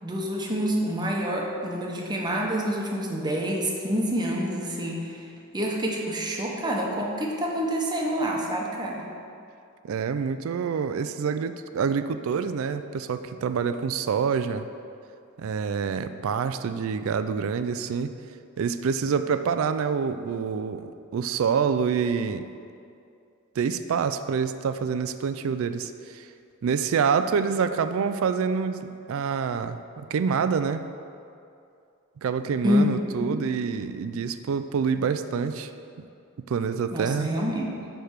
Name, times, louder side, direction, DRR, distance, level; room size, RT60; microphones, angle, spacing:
voice 1, 0.0-5.3 5.5-9.1 32.6-33.3 36.9-37.8, equal, 20° right, -2 dB, 0.9 m, -27 dB
voice 2, 9.8-14.6 15.4-18.1 18.6-22.5 23.6-26.3 26.6-30.8 32.2-35.7 36.5-37.3, right 6 dB, 65° right, 10 dB, 0.3 m, -27 dB
10.0 x 3.4 x 6.4 m, 2.5 s
head